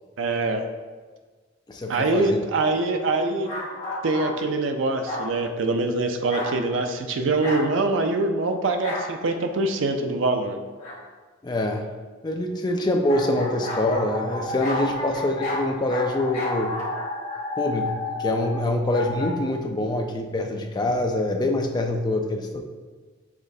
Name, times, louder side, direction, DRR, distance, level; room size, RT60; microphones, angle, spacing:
voice 1, 0.2-0.7 1.9-3.5 4.0-10.6, right 2 dB, 70° right, 5 dB, 0.4 m, -24 dB
voice 2, 1.7-2.4 11.4-11.9 12.2-16.7 17.6-17.9 18.2-22.6, left 1 dB, 20° left, 3 dB, 0.4 m, -25 dB
sound 1, 3.4-4.4 5.0-5.3 6.3-6.6 7.4-7.7 8.8-9.1 10.8-11.0 13.1-19.3, left 2 dB, 40° left, 1.1 m, -31 dB
5.9 x 3.2 x 2.7 m, 1.4 s
head